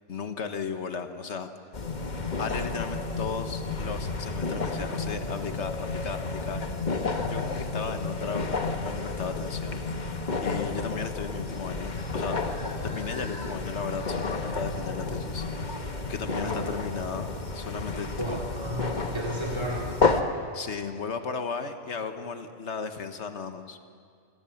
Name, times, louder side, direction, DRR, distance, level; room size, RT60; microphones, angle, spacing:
voice 1, 0.1-1.5 2.4-7.0 7.3-12.4 12.8-18.4 20.5-23.8, left 5 dB, 80° left, 8 dB, 1.5 m, -35 dB
sound 1, 1.7-20.2, left 3 dB, 40° left, 1.3 m, -31 dB
voice 2, 16.2-16.7 18.2-20.0, right 1 dB, 25° right, -2 dB, 2.9 m, -33 dB
26.5 x 17.0 x 7.1 m, 2.2 s
omnidirectional pair, 1.2 m